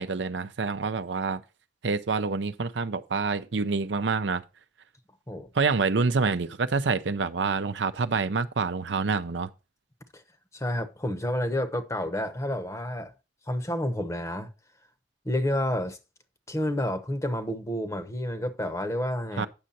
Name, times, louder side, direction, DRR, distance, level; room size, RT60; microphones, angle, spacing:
voice 1, 0.0-1.4 1.8-4.4 5.5-9.5 19.4-19.5, right 4 dB, 75° right, 0.6 m, -27 dB
voice 2, 10.5-13.1 13.5-14.5 15.2-16.0 16.5-19.5, left 1 dB, 15° left, 0.9 m, -29 dB
8.8 x 6.4 x 4.2 m
head